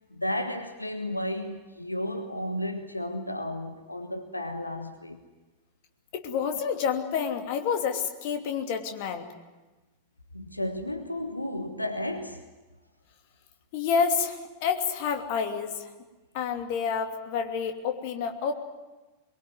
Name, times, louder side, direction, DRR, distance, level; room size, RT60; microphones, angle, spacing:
voice 1, 0.1-5.2 10.3-12.4, left 1 dB, 85° left, 1.3 m, -33 dB
voice 2, 6.1-9.3 13.7-15.9 16.3-18.5, left 6 dB, 45° left, 2.7 m, -29 dB
23.0 x 22.5 x 9.6 m
figure-of-eight pair, 90°, 0 cm